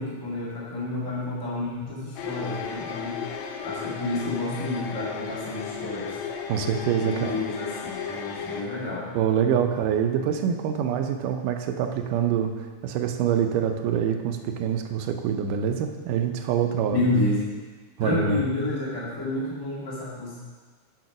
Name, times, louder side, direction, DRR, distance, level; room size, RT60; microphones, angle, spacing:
voice 1, 0.0-3.2 3.6-6.2 7.0-9.2 16.9-17.5 18.0-20.4, left 2 dB, 10° left, -6 dB, 1.1 m, -29 dB
sound 1, 2.2-8.6, left 6 dB, 75° left, 1.8 m, -34 dB
voice 2, 6.5-7.4 9.1-17.0 18.0-18.4, right 8 dB, 90° right, 5 dB, 2.4 m, -25 dB
9.1 x 6.2 x 6.0 m, 1.4 s
omnidirectional pair, 3.6 m